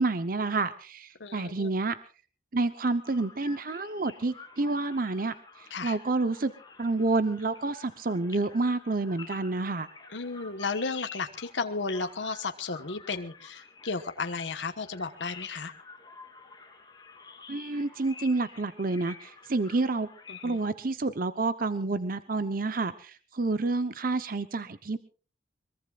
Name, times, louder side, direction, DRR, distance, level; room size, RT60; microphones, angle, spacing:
voice 1, 0.0-2.0 2.5-6.5 6.8-9.9 17.5-20.1 20.4-25.0, right 3 dB, 50° right, 12 dB, 0.8 m, -29 dB
voice 2, 1.2-1.7 5.7-6.0 10.1-15.7 20.3-20.6, left 4 dB, 85° left, 7 dB, 1.3 m, -34 dB
sound 1, 3.0-20.6, left 4 dB, 25° left, 3.2 m, -49 dB
23.5 x 22.0 x 2.4 m, 0.38 s
head